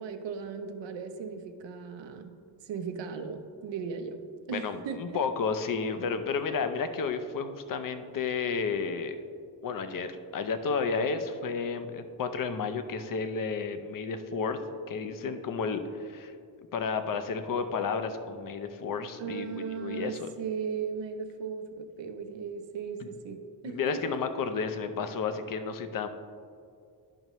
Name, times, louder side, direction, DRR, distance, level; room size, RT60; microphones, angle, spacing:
voice 1, 0.0-2.3 2.6-4.2 4.5-5.2 19.2-24.2, right 6 dB, 80° right, 7 dB, 0.7 m, -37 dB
voice 2, 4.5-9.2 9.6-14.6 14.9-16.3 16.7-20.3 23.6-26.1, left 5 dB, 50° left, 9 dB, 0.6 m, -32 dB
11.0 x 5.5 x 3.0 m, 2.3 s
cardioid pair, 105°, 43 cm